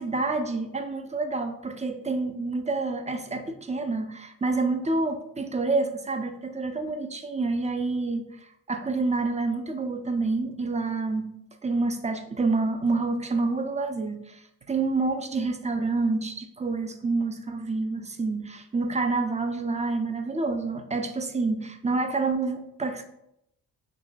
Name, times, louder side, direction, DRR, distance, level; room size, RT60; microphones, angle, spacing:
voice 1, 0.0-8.4 8.7-11.3 11.6-23.0, right 3 dB, 20° right, 7 dB, 0.3 m, -28 dB
2.5 x 2.1 x 3.8 m, 0.78 s
supercardioid pair, 45°, 41 cm